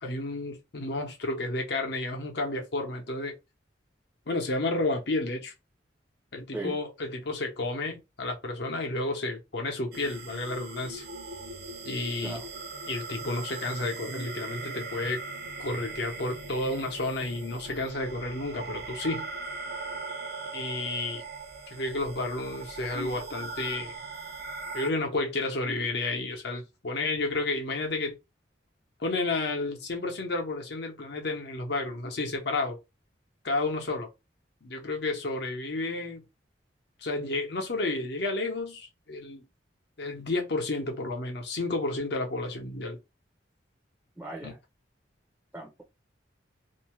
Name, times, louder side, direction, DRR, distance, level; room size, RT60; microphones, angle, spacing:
voice 1, 0.0-3.3 4.3-5.5 6.3-11.1 11.8-12.4 12.9-15.2 15.6-19.3 20.5-21.2 21.7-23.9 24.7-28.2 29.0-32.8 33.4-34.1 34.6-36.3 37.0-39.4 40.0-43.0 44.4-44.5, left 2 dB, 60° left, 0.8 m, -31 dB
sound 1, 9.9-24.9, right 3 dB, 55° right, 0.7 m, -40 dB
voice 2, 44.2-44.5 45.5-45.8, right 2 dB, 10° right, 0.6 m, -37 dB
2.6 x 2.2 x 3.1 m
head